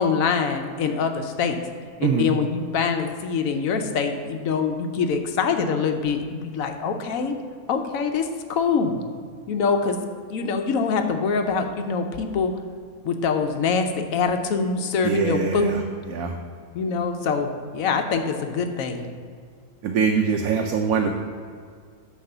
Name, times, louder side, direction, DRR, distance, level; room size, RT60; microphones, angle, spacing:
voice 1, 0.0-1.6 2.0-7.3 7.7-9.0 9.5-10.0 10.3-12.5 13.0-15.9 16.7-19.1, left 5 dB, 70° left, 6 dB, 1.1 m, -24 dB
voice 2, 2.0-2.3 15.0-15.8 16.1-16.4 19.8-21.1, right 6 dB, 75° right, 2 dB, 1.0 m, -23 dB
9.5 x 3.2 x 6.6 m, 2.1 s
omnidirectional pair, 1.5 m